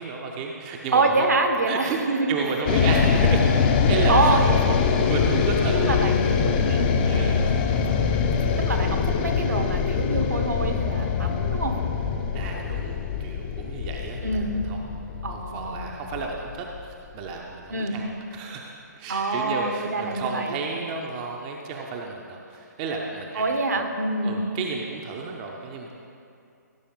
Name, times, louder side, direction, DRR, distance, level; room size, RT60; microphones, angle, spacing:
voice 1, 0.0-1.3 1.7-2.0 2.3-3.4 3.9-4.4 5.1-6.2 7.1-7.4 8.4-8.7 12.3-14.8 15.3-16.7 17.1-23.9 24.2-25.9, right 4 dB, 25° right, 0 dB, 0.7 m, -32 dB
voice 2, 0.9-2.4 4.1-4.4 4.7-4.8 5.8-6.3 6.6-6.9 8.7-11.7 14.2-14.5 15.2-15.9 17.7-17.9 19.1-20.6 23.3-24.4, right 3 dB, 60° right, 5 dB, 1.2 m, -26 dB
sound 1, 2.7-16.9, left 6 dB, 30° left, 0.7 m, -23 dB
16.0 x 6.8 x 3.8 m, 2.6 s
figure-of-eight pair, 130°, 10 cm